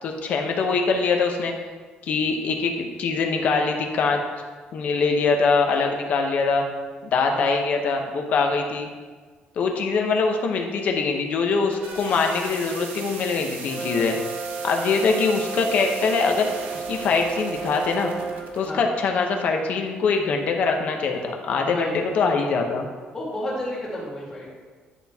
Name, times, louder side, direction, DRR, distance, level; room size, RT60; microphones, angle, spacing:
voice 1, 0.0-1.5 2.0-4.2 4.7-6.6 7.1-8.9 9.6-14.2 14.6-18.1 18.5-22.9, left 4 dB, 50° left, 3 dB, 0.8 m, -23 dB
sound 1, 11.5-18.7, right 5 dB, 70° right, 0.9 m, -39 dB
Brass instrument, 13.6-18.5, right 5 dB, 30° right, 1.1 m, -33 dB
voice 2, 21.6-22.0 23.1-24.5, left 1 dB, 15° left, -5 dB, 1.7 m, -31 dB
10.0 x 4.3 x 3.5 m, 1.5 s
cardioid pair, 175°, 3 cm